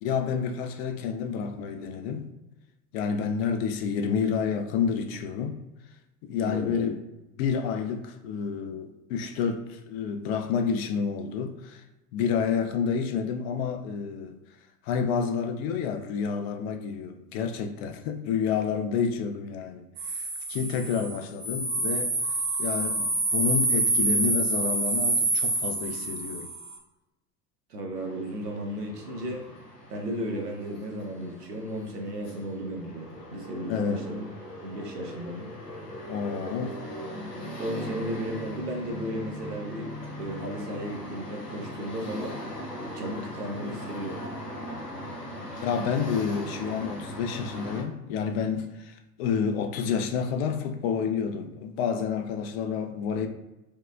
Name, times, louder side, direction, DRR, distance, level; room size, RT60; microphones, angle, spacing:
voice 1, 0.0-2.3 2.9-5.6 6.2-7.0 7.4-11.8 12.1-14.4 14.8-22.1 22.6-26.5 33.7-34.2 36.1-36.8 45.6-53.3, left 6 dB, 45° left, 0.5 m, -29 dB
voice 2, 6.4-6.9 27.7-29.5 29.9-34.3 34.6-35.5 37.6-39.9 40.2-42.4 42.9-44.2, equal, 85° right, 0.8 m, -34 dB
sound 1, 20.0-26.8, right 2 dB, 30° right, 0.9 m, -27 dB
sound 2, 28.0-47.8, equal, 90° left, 0.8 m, -40 dB
4.6 x 2.1 x 2.3 m
figure-of-eight pair, 80°, 46 cm